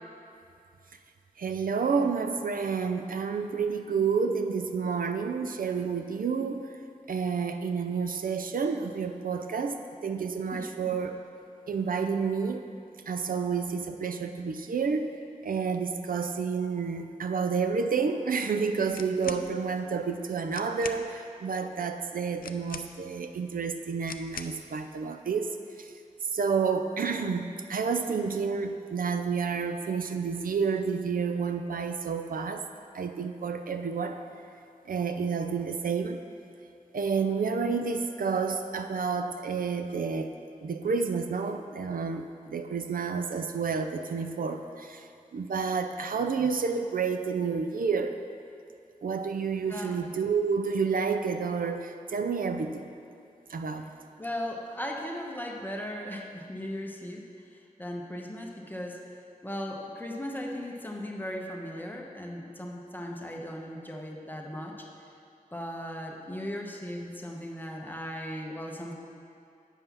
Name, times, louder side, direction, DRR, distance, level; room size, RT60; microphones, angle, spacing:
voice 1, 1.4-6.7 7.1-9.8 10.0-11.2 11.7-12.6 13.1-15.1 15.4-25.9 26.3-32.7 32.9-34.2 34.9-36.2 36.9-40.3 40.6-48.2 49.0-52.9 53.5-53.9, right 5 dB, 80° right, 7 dB, 0.4 m, -30 dB
voice 2, 10.5-10.9 19.2-19.4 49.7-49.9 54.2-57.2 57.8-59.1 59.4-64.9 65.5-68.9, equal, 15° left, 0 dB, 0.9 m, -37 dB
sound 1, 18.9-19.5 20.2-20.3 20.5-21.0 22.4-23.2 24.0-24.6, left 6 dB, 80° left, 0.4 m, -42 dB
8.3 x 5.4 x 5.8 m, 2.5 s
wide cardioid pair, 100°, 14 cm